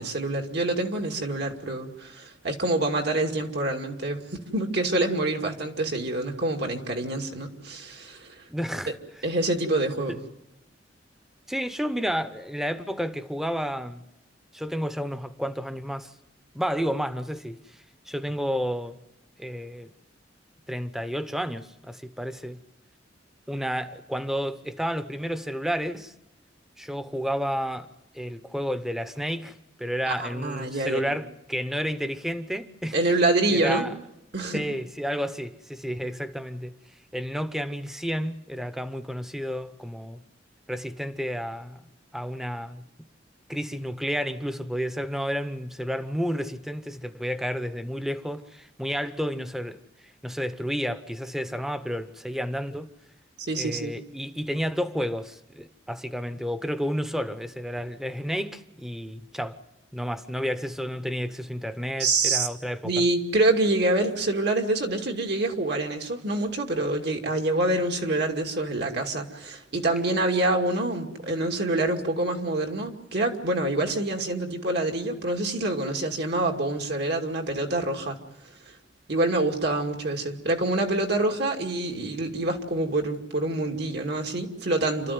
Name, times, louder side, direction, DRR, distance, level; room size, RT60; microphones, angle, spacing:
voice 1, 0.0-8.3 9.2-10.2 30.1-31.1 32.9-33.9 34.3-34.6 53.5-53.9 62.0-62.5 62.8-78.2 79.1-85.1, right 2 dB, 65° right, 2.5 m, -26 dB
voice 2, 8.5-9.0 10.1-10.2 11.5-14.0 14.5-16.1 16.5-17.8 18.1-19.0 19.4-19.9 20.7-22.6 23.5-26.1 26.8-27.9 28.1-33.0 33.5-33.9 34.5-36.8 37.1-40.2 40.7-42.8 43.5-49.8 50.2-52.9 53.6-59.6 59.9-63.0, equal, ahead, 0.9 m, -31 dB
28.0 x 13.0 x 9.5 m
head